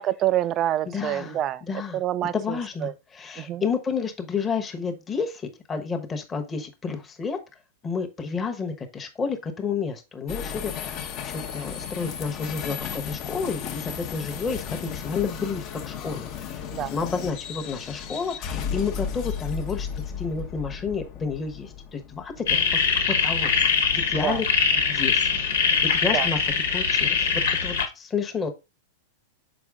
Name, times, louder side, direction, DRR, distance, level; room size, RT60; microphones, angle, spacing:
voice 1, 0.0-1.6 1.9-2.3 2.8-2.9 3.5-3.6 16.7-16.9 24.2-24.4 26.1-26.3, right 12 dB, 30° right, 0.4 m, -26 dB
voice 2, 0.8-2.0 2.3-7.4 7.8-22.8 23.1-23.5 23.9-24.5 24.8-25.3 25.6-26.4 26.7-28.5, left 5 dB, 15° left, 1.0 m, -31 dB
sound 1, 10.3-23.6, left 7 dB, 40° left, 0.8 m, -34 dB
sound 2, 22.5-27.9, left 6 dB, 85° left, 1.5 m, -22 dB
6.1 x 4.5 x 3.5 m
supercardioid pair, 140°, 0 cm